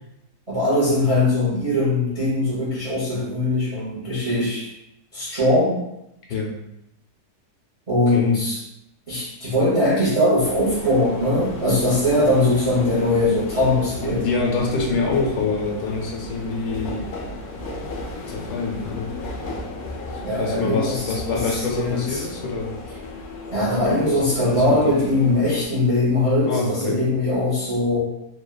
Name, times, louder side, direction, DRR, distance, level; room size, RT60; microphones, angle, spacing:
voice 1, 0.5-4.7 5.1-5.8 7.9-8.6 9.1-14.2 20.2-22.2 23.5-28.0, left 1 dB, 50° right, -8 dB, 0.4 m, -21 dB
voice 2, 6.3-6.6 8.1-8.4 14.1-17.1 18.3-19.2 20.4-22.8 24.4-24.9 26.5-27.0, left 4 dB, 90° left, -1 dB, 1.2 m, -25 dB
sound 1, 10.4-25.7, left 2 dB, 65° left, 0.7 m, -35 dB
3.1 x 2.2 x 2.2 m, 0.82 s
omnidirectional pair, 1.7 m